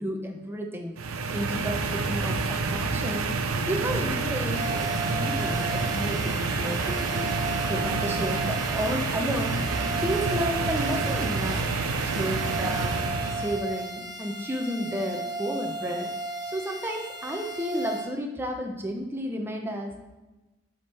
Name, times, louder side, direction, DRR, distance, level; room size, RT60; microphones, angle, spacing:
voice 1, 0.0-3.3 3.7-7.4 7.7-11.7 12.0-13.0 13.3-16.1 16.5-20.2, equal, 10° right, 2 dB, 0.6 m, -32 dB
sound 1, 1.0-13.6, right 4 dB, 80° right, 0.6 m, -28 dB
sound 2, 4.5-18.0, right 1 dB, 35° left, 2.1 m, -35 dB
7.8 x 3.7 x 4.3 m, 1.1 s
head